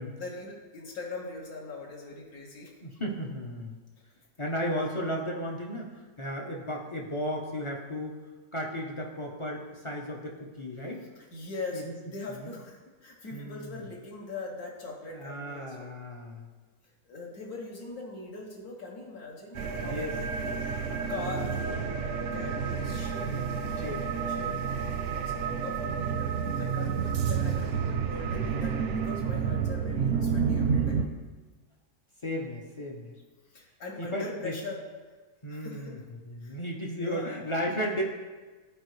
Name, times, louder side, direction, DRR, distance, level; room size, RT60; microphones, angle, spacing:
voice 1, 0.0-2.7 11.3-15.9 17.1-20.4 21.1-31.0 33.5-34.8 35.5-36.0 36.4-36.6 37.0-37.3, left 3 dB, 75° left, -2 dB, 1.5 m, -41 dB
voice 2, 2.8-3.8 4.4-8.2 8.5-11.0 11.7-11.9 12.3-12.5 13.3-13.8 15.1-16.5 19.8-20.7 22.8-23.1 23.8-24.0 25.3-25.5 28.2-28.4 32.2-33.1 34.0-34.6 35.4-38.0, equal, 45° left, -1 dB, 0.4 m, -35 dB
sound 1, 19.5-31.1, right 6 dB, 65° right, 0.7 m, -30 dB
12.0 x 4.5 x 3.1 m, 1.3 s
omnidirectional pair, 1.6 m